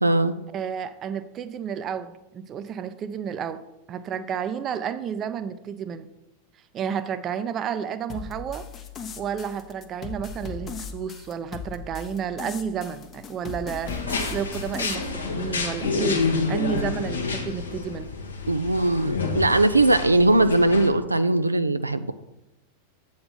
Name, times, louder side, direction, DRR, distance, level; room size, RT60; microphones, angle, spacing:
voice 1, 0.0-0.4 18.5-22.1, right 2 dB, 85° right, 11 dB, 0.3 m, -20 dB
voice 2, 0.5-3.6 3.9-6.1 6.7-8.7 9.2-18.1, right 8 dB, 30° right, 12 dB, 0.5 m, -31 dB
sound 1, 8.1-14.9, left 5 dB, 25° left, 0.7 m, -38 dB
sound 2, 13.8-20.9, left 4 dB, 70° left, 1.3 m, -29 dB
7.8 x 4.0 x 6.7 m, 0.90 s
figure-of-eight pair, 90°, 0 cm